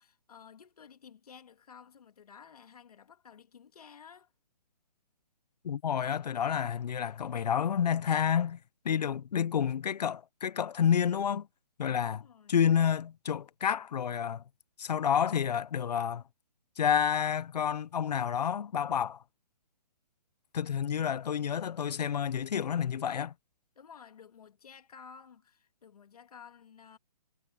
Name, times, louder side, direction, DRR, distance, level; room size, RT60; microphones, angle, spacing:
voice 1, 0.0-4.3 12.1-12.6 23.8-27.0, left 7 dB, 65° left, 2.0 m, -53 dB
voice 2, 5.6-8.6 8.8-11.5 11.8-12.2 12.5-14.4 14.8-16.2 16.8-19.2 20.5-23.3, left 8 dB, 80° left, 0.6 m, -29 dB
hypercardioid pair, 165°, 21 cm